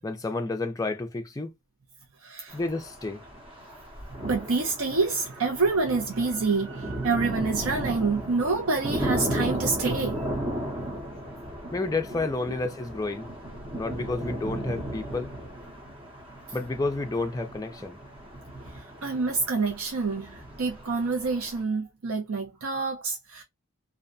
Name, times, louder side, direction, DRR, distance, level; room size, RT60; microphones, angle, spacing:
voice 1, 0.0-1.5 2.5-3.2 11.7-13.3 13.8-15.3 16.5-18.0, left 3 dB, 15° left, 0.4 m, -30 dB
voice 2, 2.2-2.5 4.2-10.3 18.7-23.4, right 4 dB, 80° right, 0.6 m, -27 dB
sound 1, 2.5-21.6, right 1 dB, 25° right, 0.7 m, -35 dB
2.7 x 2.1 x 2.5 m
head